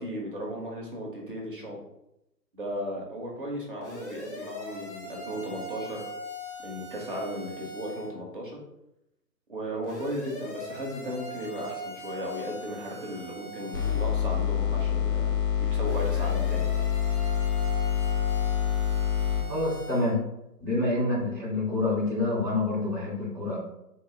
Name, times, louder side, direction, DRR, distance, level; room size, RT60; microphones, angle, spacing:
voice 1, 0.0-1.8 2.5-6.1 6.6-8.6 9.5-15.3 15.7-16.7, equal, 35° right, -2 dB, 0.7 m, -35 dB
sound 1, 3.8-8.1 9.8-14.2 15.8-20.1, equal, 45° left, 1.2 m, -41 dB
sound 2, 13.7-19.5, left 9 dB, 75° left, 1.5 m, -26 dB
voice 2, 19.5-20.2 20.6-23.6, left 2 dB, 10° left, -11 dB, 0.7 m, -27 dB
3.7 x 2.6 x 4.2 m, 0.88 s
hypercardioid pair, 155°, 50 cm